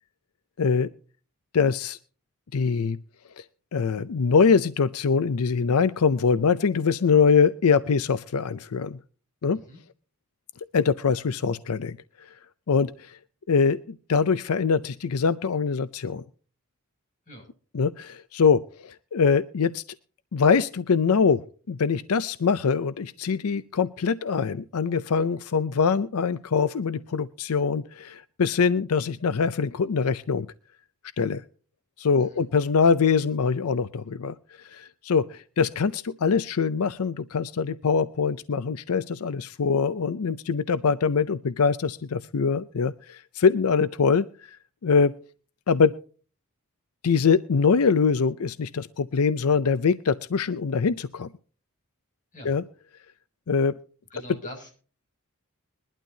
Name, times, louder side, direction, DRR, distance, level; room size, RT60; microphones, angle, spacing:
voice 1, 0.6-0.9 1.5-2.0 2.5-3.0 3.4-3.5 3.7-9.0 9.4-9.6 10.7-12.0 12.7-13.2 13.5-16.2 17.7-19.8 20.3-30.5 31.2-31.4 32.0-44.6 44.8-45.2 45.7-46.0 47.0-51.3 52.4-52.6 53.5-53.8, left 5 dB, 90° left, 15 dB, 0.5 m, -23 dB
voice 2, 54.1-54.7, equal, 35° left, 1 dB, 6.7 m, -43 dB
21.5 x 12.0 x 2.7 m, 0.39 s
head